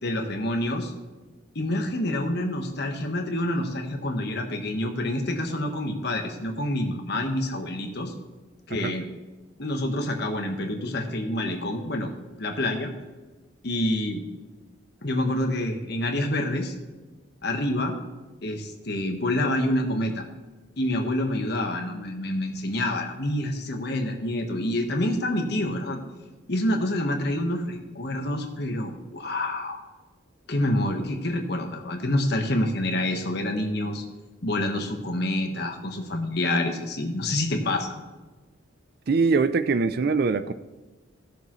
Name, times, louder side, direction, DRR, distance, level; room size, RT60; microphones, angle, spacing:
voice 1, 0.0-0.9 1.5-8.1 8.7-9.1 9.6-12.1 12.4-12.9 13.6-14.2 15.0-16.7 17.4-18.0 18.4-20.3 20.8-26.0 26.5-29.8 30.5-34.0 34.4-37.9, left 1 dB, 55° left, 3 dB, 1.3 m, -27 dB
voice 2, 39.1-40.5, right 4 dB, 50° right, 12 dB, 0.4 m, -22 dB
16.0 x 6.7 x 3.1 m, 1.3 s
head